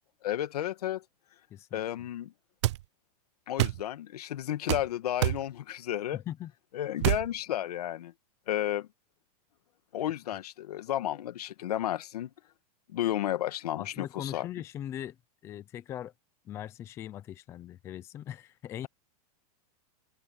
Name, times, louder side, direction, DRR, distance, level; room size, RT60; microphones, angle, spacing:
voice 1, 0.2-1.0 1.7-2.3 3.5-6.2 6.7-8.1 8.5-8.9 9.9-12.3 12.9-14.5, left 12 dB, 85° left, 1.6 m, -32 dB
voice 2, 1.5-1.8 6.1-6.5 13.8-15.2 15.4-16.1 16.5-18.9, left 11 dB, 15° left, 0.5 m, -40 dB
sound 1, 2.6-2.8 3.6-3.8 4.7-4.9 5.2-5.4 7.0-7.3, right 16 dB, 50° right, 0.5 m, -26 dB
open air
supercardioid pair, 175°, 20 cm